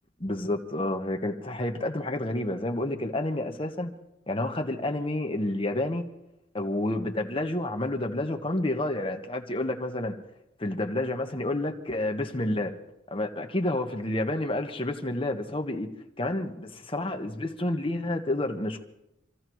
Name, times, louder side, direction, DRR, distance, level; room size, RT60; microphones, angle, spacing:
voice 1, 0.2-3.9 4.3-6.0 6.5-10.1 10.6-12.7 13.1-15.9 16.2-18.8, left 1 dB, 30° left, 4 dB, 1.1 m, -29 dB
27.5 x 15.0 x 3.1 m, 0.86 s
head